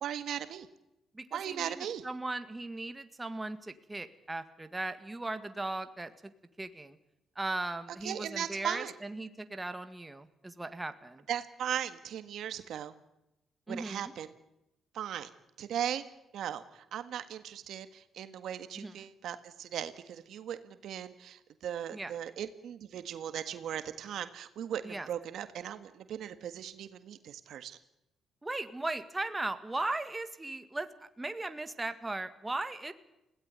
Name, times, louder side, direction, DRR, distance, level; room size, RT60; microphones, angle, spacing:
voice 1, 0.0-0.7 1.3-2.1 8.0-8.9 11.3-12.9 13.7-14.3 14.9-15.3 15.6-16.0 16.3-27.8, right 10 dB, 75° right, 11 dB, 1.6 m, -38 dB
voice 2, 1.1-6.1 6.6-7.0 7.4-11.3 13.7-14.1 18.8-19.0 21.9-22.1 24.8-25.1 28.4-32.9, right 2 dB, 15° right, 10 dB, 1.9 m, -38 dB
21.0 x 17.0 x 9.5 m, 0.88 s
cardioid pair, 90°, 0 cm